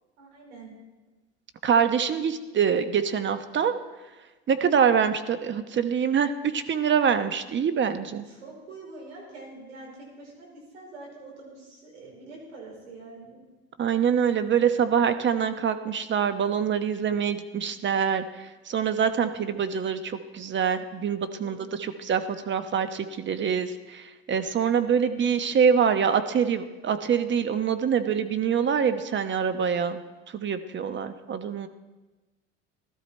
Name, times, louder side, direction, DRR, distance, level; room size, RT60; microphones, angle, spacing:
voice 1, 0.2-0.7 8.1-13.4 21.4-21.7, right 3 dB, 90° right, -1 dB, 5.0 m, -45 dB
voice 2, 1.6-3.7 4.5-8.2 13.8-18.2 18.7-30.0 30.3-31.7, right 7 dB, 35° right, 10 dB, 1.1 m, -25 dB
16.5 x 13.0 x 4.4 m, 1.2 s
hypercardioid pair, 90°, 34 cm